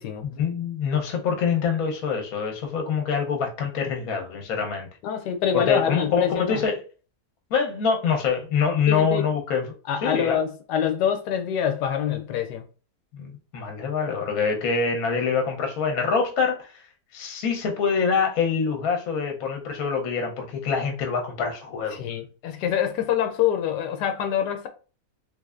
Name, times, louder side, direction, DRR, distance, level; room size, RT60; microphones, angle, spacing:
voice 1, 0.2-4.9 5.5-6.8 7.5-9.7 10.0-10.4 13.1-16.7 17.1-22.0, left 6 dB, 65° left, 1.2 m, -25 dB
voice 2, 5.0-6.6 8.9-9.3 9.9-12.6 21.9-24.7, left 8 dB, 90° left, 1.2 m, -25 dB
3.4 x 3.2 x 2.4 m
omnidirectional pair, 1.7 m